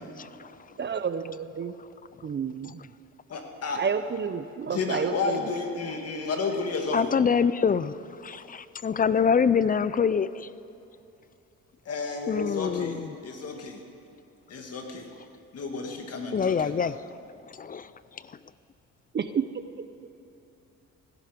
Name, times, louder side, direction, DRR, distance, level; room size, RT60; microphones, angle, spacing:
voice 1, 0.8-1.7 2.2-2.9 3.7-5.4 19.1-19.6, right 6 dB, 35° right, 11 dB, 0.6 m, -30 dB
voice 2, 3.3-3.9 4.7-7.2 11.9-13.8 14.5-15.1 15.5-16.9, left 4 dB, 55° left, 3 dB, 2.2 m, -32 dB
voice 3, 6.9-7.9 8.2-10.5 12.3-13.0 16.3-17.0 17.6-17.9, left 6 dB, 30° left, 16 dB, 0.4 m, -25 dB
16.5 x 11.5 x 5.1 m, 2.9 s
cardioid pair, 90°, 30 cm